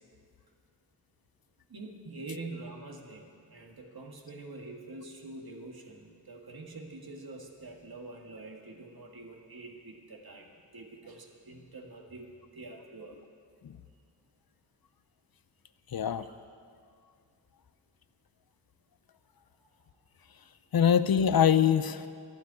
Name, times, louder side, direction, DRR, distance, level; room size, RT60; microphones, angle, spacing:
voice 1, 1.7-13.2 16.2-16.4 19.6-19.7, right 2 dB, 65° right, 1 dB, 1.7 m, -45 dB
voice 2, 15.9-16.3 20.7-22.1, left 8 dB, 65° left, 13 dB, 0.6 m, -23 dB
12.0 x 7.7 x 9.6 m, 2.3 s
wide cardioid pair, 80°, 39 cm